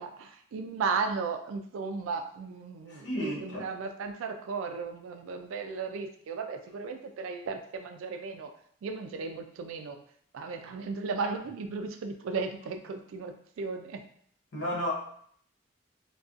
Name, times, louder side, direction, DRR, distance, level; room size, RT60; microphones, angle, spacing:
voice 1, 0.0-8.5 8.8-10.0 10.3-14.0, right 4 dB, 90° right, 6 dB, 0.3 m, -35 dB
voice 2, 2.9-3.7 14.5-14.9, equal, 65° left, -2 dB, 0.6 m, -32 dB
2.4 x 2.2 x 2.4 m, 0.64 s
head